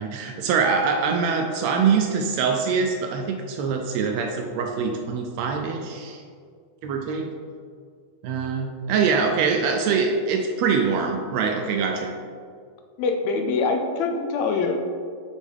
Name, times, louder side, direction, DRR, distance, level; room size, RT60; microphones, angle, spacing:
voice 1, 0.0-6.2 6.8-7.3 8.2-12.1, right 5 dB, 80° right, 3 dB, 1.6 m, -24 dB
voice 2, 13.0-14.8, left 4 dB, 80° left, 4 dB, 1.8 m, -24 dB
8.4 x 4.9 x 3.5 m, 2.1 s
omnidirectional pair, 3.4 m